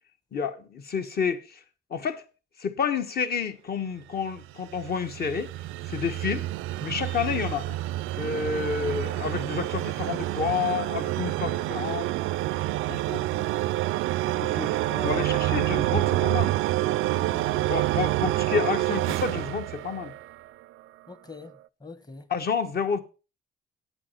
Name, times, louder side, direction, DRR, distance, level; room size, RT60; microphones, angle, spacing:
voice 1, 0.3-1.6 1.9-2.2 2.6-5.5 5.9-6.5 6.8-7.8 8.2-12.1 12.9-13.5 14.4-14.8 15.0-16.5 17.7-20.1 22.3-23.0, left 6 dB, 50° left, 1.5 m, -29 dB
sound 1, 4.4-20.5, right 16 dB, 90° right, 0.4 m, -28 dB
voice 2, 14.9-15.2 17.1-17.6 21.1-22.3, left 4 dB, 20° left, 1.2 m, -43 dB
8.6 x 7.7 x 5.7 m
cardioid pair, 90°, 20 cm